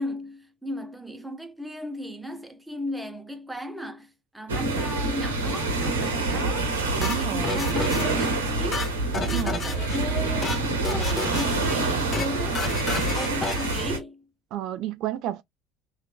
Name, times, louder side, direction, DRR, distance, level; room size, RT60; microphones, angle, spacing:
voice 1, 0.0-12.9 13.1-14.3, left 1 dB, 5° right, 0.7 m, -35 dB
sound 1, 4.5-14.0, right 3 dB, 80° right, 0.7 m, -26 dB
sound 2, 7.0-8.3 8.6-10.0 10.3-10.6 10.8-11.7 12.0-12.3 12.5-13.8, left 4 dB, 35° left, 0.7 m, -31 dB
voice 2, 7.0-7.7 9.1-9.7 14.5-15.4, right 12 dB, 60° right, 0.4 m, -31 dB
2.9 x 2.3 x 2.4 m
figure-of-eight pair, 60°, 0 cm